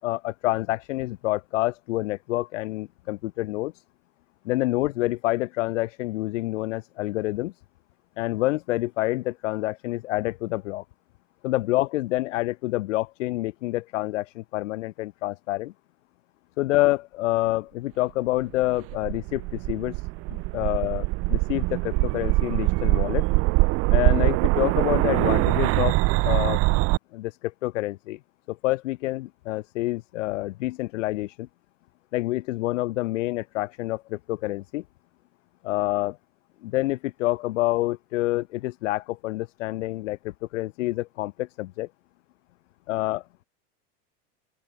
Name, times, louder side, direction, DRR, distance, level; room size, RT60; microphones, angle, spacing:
voice 1, 0.0-3.8 4.4-7.5 8.2-10.8 11.4-15.7 16.6-23.2 23.9-26.0 26.2-26.6 27.1-28.2 28.5-31.5 32.1-34.8 35.6-36.2 36.6-41.9 42.9-43.2, left 18 dB, 80° left, 4.5 m, -27 dB
sound 1, 18.6-27.0, right 25 dB, 40° right, 2.1 m, -23 dB
open air
supercardioid pair, 175°, 37 cm